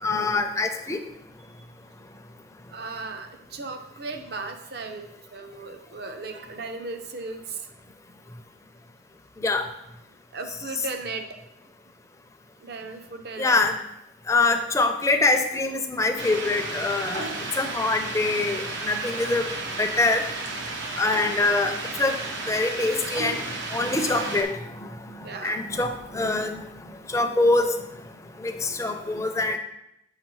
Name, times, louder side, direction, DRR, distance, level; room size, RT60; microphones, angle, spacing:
voice 1, 0.0-1.0 9.4-9.6 13.4-13.7 14.3-17.3 17.6-19.5 19.8-20.2 21.0-21.7 22.0-22.2 22.5-23.4 23.7-24.6 25.4-26.6 27.1-27.7 28.4-29.6, left 3 dB, 15° left, 6 dB, 0.5 m, -24 dB
voice 2, 2.7-7.6 10.3-11.3 12.6-13.6 18.1-18.2 25.2-25.6, right 3 dB, 55° right, 6 dB, 0.6 m, -36 dB
sound 1, 16.2-24.4, right 2 dB, 90° right, 1.0 m, -33 dB
7.4 x 5.9 x 3.1 m, 0.83 s
head